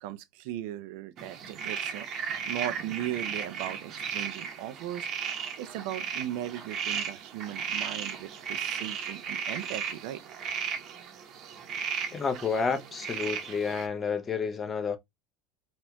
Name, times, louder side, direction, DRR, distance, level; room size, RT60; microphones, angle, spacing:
voice 1, 0.0-2.1 2.5-5.1 5.6-10.2, right 12 dB, 75° right, 0.4 m, -37 dB
sound 1, 1.2-13.9, right 7 dB, 45° right, 0.8 m, -35 dB
voice 2, 12.1-15.0, left 5 dB, 20° left, 0.7 m, -30 dB
4.1 x 2.4 x 2.8 m
supercardioid pair, 135°, 0 cm